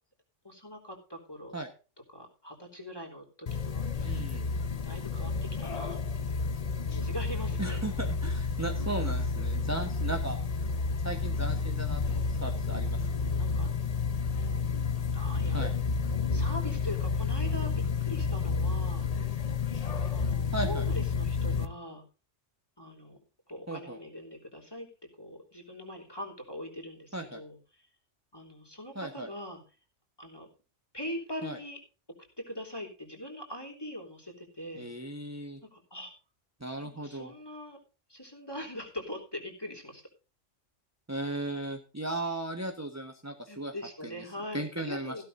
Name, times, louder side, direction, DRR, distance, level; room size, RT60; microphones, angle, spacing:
voice 1, 0.4-1.6 2.1-4.3 4.6-5.3 5.6-6.4 6.8-7.8 8.6-9.2 12.8-13.7 15.1-15.6 16.0-17.7 18.0-19.1 20.1-22.0 22.8-23.2 23.5-24.9 25.2-27.9 28.3-29.6 30.2-30.5 30.9-31.8 32.5-34.9 35.7-36.1 36.9-37.8 38.1-40.0 43.5-45.3, left 1 dB, 20° left, 2 dB, 3.4 m, -42 dB
sound 1, 3.5-21.7, left 5 dB, 35° left, 0.9 m, -30 dB
voice 2, 4.0-4.5 7.6-10.4 11.0-13.0 15.5-15.7 20.5-20.8 23.7-24.0 27.1-27.4 28.9-29.3 31.4-31.6 34.8-35.6 36.6-37.3 41.1-43.7 44.0-44.1 44.5-45.2, right 2 dB, 15° right, 5 dB, 1.3 m, -36 dB
16.0 x 11.5 x 2.7 m, 0.33 s
omnidirectional pair, 1.2 m